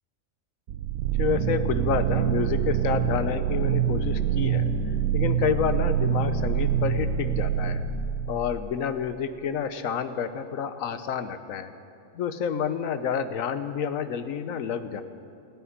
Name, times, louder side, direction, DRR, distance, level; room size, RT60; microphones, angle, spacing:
sound 1, 0.7-8.5, right 8 dB, 85° right, 1.1 m, -25 dB
voice 1, 1.2-7.8 8.3-11.7 12.1-15.0, left 7 dB, 75° left, 11 dB, 1.2 m, -29 dB
15.0 x 9.4 x 9.9 m, 2.6 s
omnidirectional pair, 1.4 m